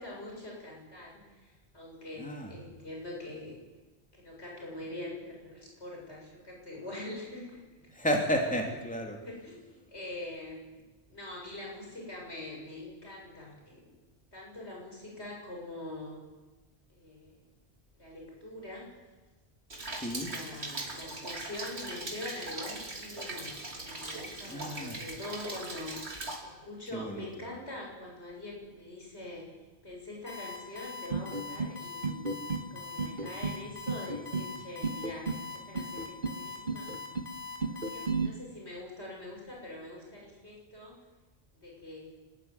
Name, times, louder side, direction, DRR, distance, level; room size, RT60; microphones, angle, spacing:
voice 1, 0.0-3.6 4.1-7.9 9.2-10.8 11.1-14.0 14.3-16.2 16.9-17.4 17.9-18.9 20.1-26.0 26.4-29.5 29.8-36.9 37.6-41.0 41.5-42.2, left 2 dB, 85° left, -2 dB, 7.5 m, -44 dB
voice 2, 2.2-2.5 7.9-9.2 19.9-20.3 24.5-25.0 26.9-27.2, equal, 5° left, 1 dB, 3.1 m, -32 dB
Rain, 19.7-26.4, right 2 dB, 90° right, 3.4 m, -40 dB
Alarm, 30.3-38.1, left 4 dB, 50° left, 4.3 m, -42 dB
sound 1, 31.1-31.7 32.0-32.7 33.0-33.6 33.9-34.5 34.8-35.4 35.7-36.4 36.7-37.3 37.6-38.3, right 4 dB, 50° right, 1.6 m, -33 dB
28.0 x 13.5 x 9.8 m, 1.2 s
omnidirectional pair, 1.1 m